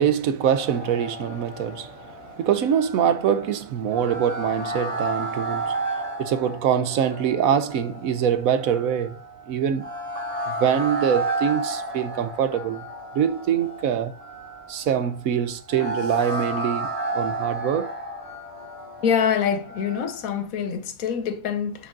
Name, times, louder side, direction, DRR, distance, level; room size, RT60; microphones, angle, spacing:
voice 1, 0.0-5.8 6.2-9.2 9.5-9.9 10.5-12.9 13.1-14.1 14.7-17.9, right 8 dB, 85° right, 1.2 m, -24 dB
sound 1, 0.6-20.4, right 2 dB, 35° right, 3.3 m, -33 dB
voice 2, 19.0-21.9, left 7 dB, 90° left, 1.3 m, -25 dB
9.4 x 6.2 x 2.6 m
omnidirectional pair, 1.4 m